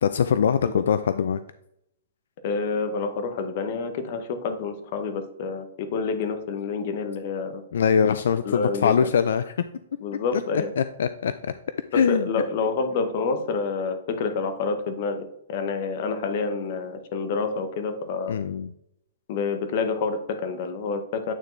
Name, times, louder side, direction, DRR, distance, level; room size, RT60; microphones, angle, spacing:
voice 1, 0.0-1.4 7.7-9.5 10.3-10.4 10.8-11.5 11.9-12.3 18.3-18.7, left 7 dB, 75° left, 12 dB, 0.3 m, -22 dB
voice 2, 2.4-7.6 8.4-9.1 10.0-10.7 11.9-18.4 19.3-21.3, left 4 dB, 45° left, 9 dB, 0.9 m, -28 dB
8.9 x 4.3 x 3.2 m, 0.77 s
hypercardioid pair, 160°, 0 cm